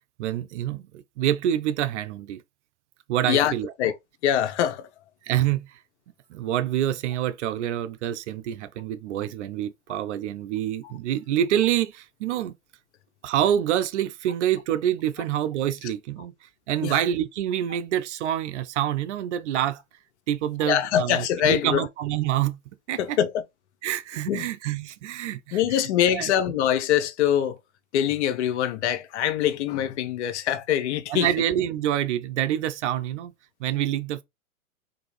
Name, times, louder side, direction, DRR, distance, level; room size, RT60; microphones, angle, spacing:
voice 1, 0.2-2.4 3.1-3.7 5.2-5.8 6.3-12.5 13.2-16.3 16.7-19.8 20.3-22.6 22.9-23.2 23.8-25.6 26.1-26.3 31.1-33.3 33.6-34.2, right 11 dB, 55° right, 0.6 m, -26 dB
voice 2, 4.2-4.9 10.8-10.9 16.8-17.0 20.7-21.9 23.0-23.4 24.3-24.5 25.5-27.6 27.9-31.3, left 10 dB, 55° left, 0.7 m, -24 dB
3.6 x 2.6 x 3.2 m
hypercardioid pair, 115°, 42 cm